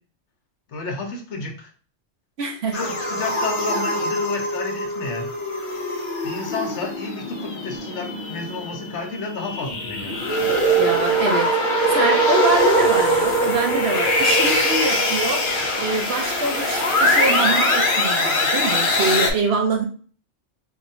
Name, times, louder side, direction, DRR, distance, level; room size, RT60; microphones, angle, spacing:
voice 1, 0.7-1.7 2.7-5.3 6.2-10.2, left 3 dB, 65° left, 3 dB, 1.1 m, -31 dB
voice 2, 2.4-2.8 10.8-11.5 11.9-15.4 15.8-19.9, right 3 dB, 60° right, 3 dB, 0.9 m, -24 dB
sound 1, 2.7-19.3, equal, 50° left, 0.9 m, -22 dB
4.3 x 2.8 x 2.7 m, 0.42 s
omnidirectional pair, 1.3 m